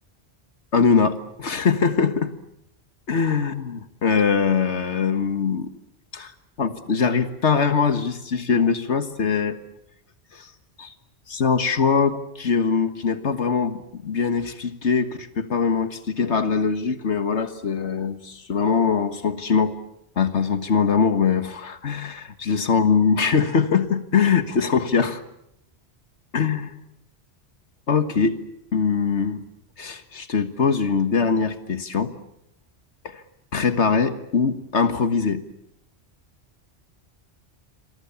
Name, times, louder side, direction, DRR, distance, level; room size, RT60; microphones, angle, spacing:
voice 1, 0.7-2.3 3.1-5.7 6.1-6.3 6.6-9.6 10.3-10.5 10.8-10.9 11.3-19.8 20.2-25.2 26.3-26.7 27.9-28.4 28.7-29.4 29.8-32.1 33.0-33.2 33.5-35.4, left 5 dB, 80° left, 10 dB, 1.8 m, -22 dB
28.5 x 23.5 x 7.1 m, 0.77 s
omnidirectional pair, 1.2 m